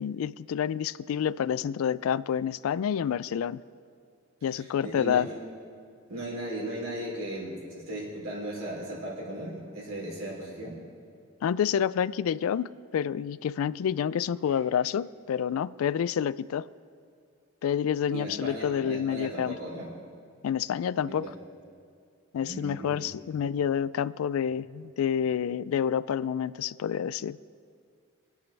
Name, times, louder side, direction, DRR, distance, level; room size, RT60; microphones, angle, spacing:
voice 1, 0.0-3.6 4.4-5.3 11.4-16.7 17.6-19.6 20.4-21.3 22.3-27.4, left 8 dB, 85° left, 19 dB, 0.3 m, -28 dB
voice 2, 4.4-5.3 6.1-10.8 14.5-14.6 18.1-19.9 21.0-21.3 22.4-23.1, right 1 dB, 75° right, -4 dB, 3.4 m, -37 dB
22.5 x 8.5 x 3.4 m, 2.3 s
head